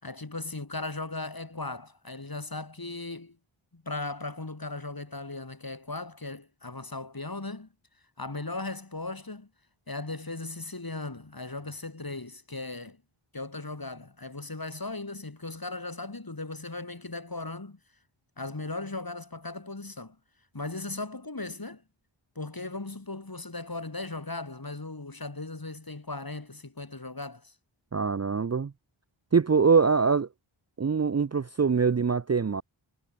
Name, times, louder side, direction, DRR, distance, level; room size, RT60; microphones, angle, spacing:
voice 1, 0.0-3.4 3.7-7.7 8.2-9.5 9.9-13.0 13.3-17.8 18.4-20.2 20.5-21.8 22.3-27.5, left 2 dB, 45° left, 6.5 m, -37 dB
voice 2, 27.9-28.7 29.3-30.3 30.8-32.6, right 5 dB, 35° right, 0.6 m, -23 dB
wide cardioid pair, 60°, 49 cm